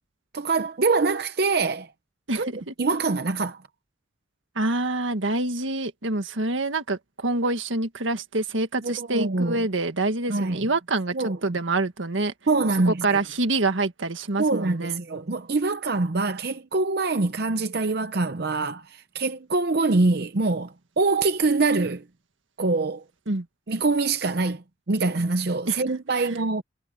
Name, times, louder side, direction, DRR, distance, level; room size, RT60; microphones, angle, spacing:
voice 1, 0.3-1.9 2.3-3.6 8.8-9.7 10.3-10.7 11.1-11.6 12.5-13.2 14.4-22.0 22.6-23.0 23.7-26.6, right 3 dB, 55° right, 0.7 m, -24 dB
voice 2, 2.3-2.7 4.6-12.3 12.9-15.0 23.3-23.5 25.7-25.8 26.1-26.2, right 2 dB, 85° right, 1.8 m, -26 dB
head